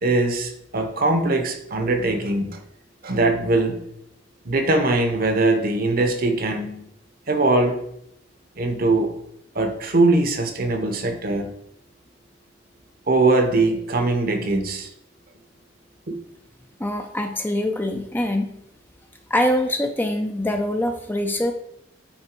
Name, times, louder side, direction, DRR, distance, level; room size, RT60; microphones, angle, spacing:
voice 1, 0.0-2.6 3.0-3.8 4.4-6.8 7.3-7.8 8.6-9.1 9.5-11.5 13.1-14.9 16.1-16.2, right 2 dB, 45° right, 6 dB, 0.9 m, -21 dB
voice 2, 16.8-18.5 19.3-21.5, left 1 dB, 10° left, 5 dB, 0.5 m, -24 dB
8.7 x 3.8 x 4.4 m, 0.75 s
head